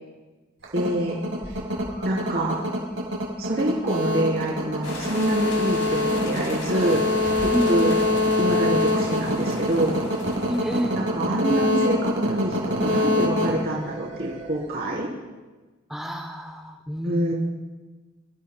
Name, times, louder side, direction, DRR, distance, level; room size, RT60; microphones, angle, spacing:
sound 1, 0.6-14.5, left 1 dB, 90° right, 4.3 m, -24 dB
voice 1, 0.7-1.2 2.0-2.6 3.4-7.0 7.4-7.9 8.4-9.9 10.9-15.1 17.0-17.3, right 1 dB, 50° right, -6 dB, 3.3 m, -26 dB
sound 2, 4.8-10.8, left 2 dB, 80° left, 2.6 m, -37 dB
voice 2, 7.5-8.0 10.4-11.0 15.9-17.3, equal, ahead, 0 dB, 0.7 m, -29 dB
25.5 x 14.0 x 2.2 m, 1.2 s
head